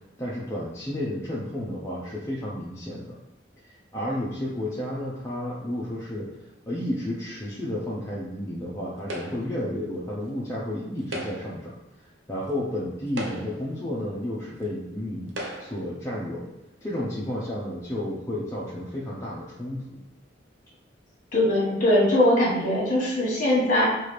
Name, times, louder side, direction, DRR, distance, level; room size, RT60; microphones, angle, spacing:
voice 1, 0.2-3.2 3.6-6.3 6.7-11.7 12.3-15.3 15.6-16.4 16.8-20.0, left 1 dB, 15° left, -7 dB, 0.5 m, -32 dB
sound 1, 9.1-9.6 11.0-11.6 12.5-12.6 13.1-13.7 14.6-14.7 15.3-15.9, right 1 dB, 85° right, 0.7 m, -36 dB
voice 2, 21.3-23.9, left 1 dB, 45° left, -4 dB, 1.3 m, -21 dB
4.6 x 2.4 x 3.1 m, 0.93 s
head